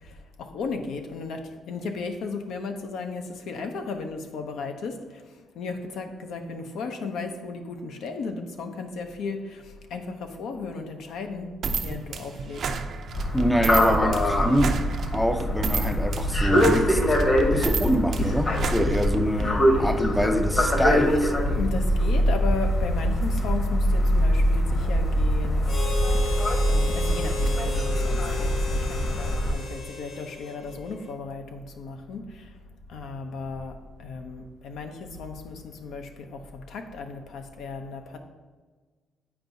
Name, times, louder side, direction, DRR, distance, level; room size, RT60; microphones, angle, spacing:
voice 1, 0.0-5.2 5.6-11.5 11.8-12.7 21.6-25.7 26.7-32.5 32.9-38.2, left 4 dB, 80° left, 5 dB, 0.6 m, -35 dB
sound 1, 11.6-19.5, right 4 dB, 60° right, 0.5 m, -31 dB
sound 2, 13.1-29.5, equal, 40° left, 1.1 m, -23 dB
voice 2, 13.3-14.9 15.1-17.2 17.5-21.3, equal, 5° left, 8 dB, 0.4 m, -25 dB
Harmonica, 25.6-31.1, left 1 dB, 55° left, 0.9 m, -34 dB
8.7 x 4.6 x 2.7 m, 1.4 s
cardioid pair, 90°, 0 cm